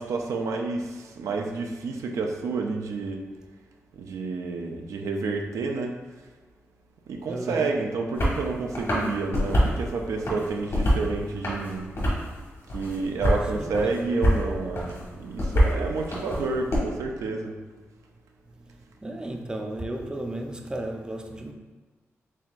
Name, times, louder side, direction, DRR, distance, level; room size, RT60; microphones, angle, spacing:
voice 1, 0.0-3.2 3.9-6.0 7.1-11.9 12.7-17.6, right 3 dB, 85° right, 0.4 m, -29 dB
voice 2, 7.3-7.7 13.5-14.1 18.6-21.5, right 1 dB, 15° right, 0.4 m, -34 dB
sound 1, 8.1-8.4 8.7-9.8 10.2-11.1 11.4-12.3 12.7-13.4 13.7-14.4 14.7-16.8, equal, 65° left, 1.5 m, -24 dB
4.4 x 3.4 x 2.5 m
cardioid pair, 65°, 5 cm